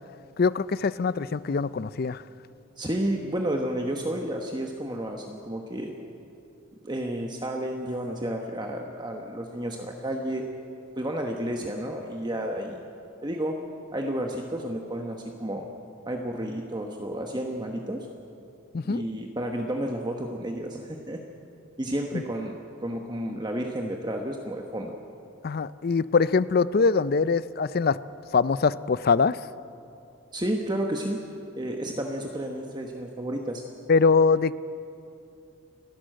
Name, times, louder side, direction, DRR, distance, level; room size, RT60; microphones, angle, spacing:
voice 1, 0.4-2.2 18.7-19.0 22.1-22.2 25.4-28.0 28.3-29.4 33.9-34.5, left 4 dB, 45° left, 17 dB, 0.4 m, -23 dB
voice 2, 2.8-5.9 6.8-10.4 11.0-12.8 13.2-13.6 13.9-15.7 16.1-18.1 18.8-21.2 21.8-25.0 30.3-31.2 31.6-33.6, right 1 dB, 20° right, 2 dB, 1.1 m, -31 dB
29.5 x 11.5 x 7.7 m, 2.6 s
head